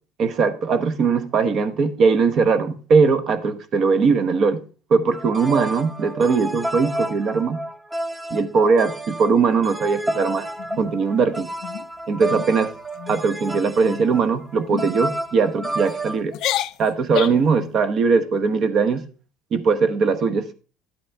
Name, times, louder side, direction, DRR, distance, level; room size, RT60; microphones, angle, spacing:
voice 1, 0.2-4.6 4.9-7.6 8.3-10.5 10.8-11.5 12.1-12.7 13.1-16.3 16.8-19.0 19.5-20.5, right 5 dB, 40° right, 1.0 m, -20 dB
sound 1, 5.1-16.2, right 1 dB, 5° right, 0.5 m, -30 dB
sound 2, 10.6-11.2 11.6-11.9 12.2-12.5 12.9-13.2 13.8-14.2 14.7-14.9 15.6-16.0 16.3-17.5, left 14 dB, 55° left, 0.4 m, -30 dB
11.5 x 8.3 x 3.4 m
cardioid pair, 150°, 0 cm